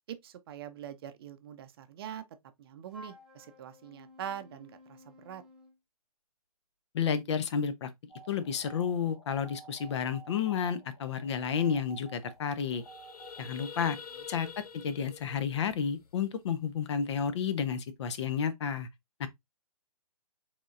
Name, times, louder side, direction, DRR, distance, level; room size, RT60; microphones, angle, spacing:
voice 1, 0.1-2.2 2.6-5.4 13.5-13.7, right 9 dB, 40° right, 0.6 m, -43 dB
Wind instrument woodwind instrument, 2.9-5.8, left 2 dB, 5° right, 1.0 m, -54 dB
voice 2, 6.9-7.9 8.3-12.8 13.4-14.0 14.3-14.5 14.7-18.9 19.2-19.3, left 7 dB, 45° left, 0.8 m, -31 dB
sound 1, 8.1-13.4, right 4 dB, 65° left, 2.0 m, -52 dB
sound 2, 12.4-16.7, left 6 dB, 85° left, 0.7 m, -47 dB
4.9 x 3.7 x 2.4 m
figure-of-eight pair, 135°, 19 cm